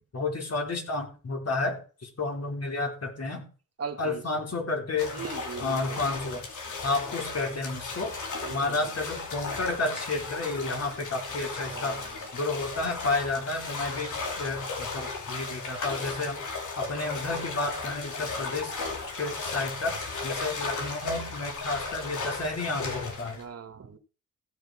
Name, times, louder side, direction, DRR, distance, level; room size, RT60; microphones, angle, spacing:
voice 1, 0.1-3.4 4.0-5.2 5.6-6.5 6.8-8.1 8.5-12.0 12.3-16.4 16.8-18.7 19.2-20.0 20.2-23.4, left 3 dB, 55° left, 4.0 m, -31 dB
voice 2, 3.8-4.5 5.1-6.1 8.4-9.0 11.7-12.2 23.3-24.0, right 6 dB, 50° right, 1.4 m, -40 dB
sound 1, 5.0-23.4, left 3 dB, 75° left, 3.0 m, -36 dB
15.5 x 6.6 x 4.8 m
cardioid pair, 60°, 31 cm